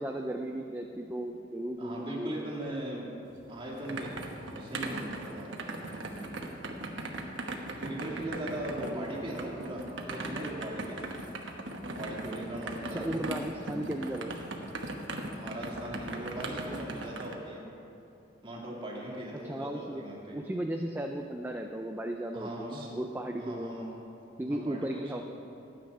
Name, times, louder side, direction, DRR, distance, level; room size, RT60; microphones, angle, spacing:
voice 1, 0.0-2.5 8.8-9.1 12.9-14.3 19.4-20.0 20.3-23.7 24.4-25.2, right 1 dB, 10° right, 3 dB, 0.4 m, -35 dB
voice 2, 1.8-3.1 3.5-5.7 7.8-11.1 11.9-13.6 15.3-17.7 18.4-20.4 22.3-22.9 23.4-23.9 24.5-25.2, right 1 dB, 25° right, -4 dB, 2.3 m, -39 dB
sound 1, 3.3-17.3, right 2 dB, 75° right, 1.1 m, -39 dB
12.5 x 8.9 x 5.5 m, 2.8 s
head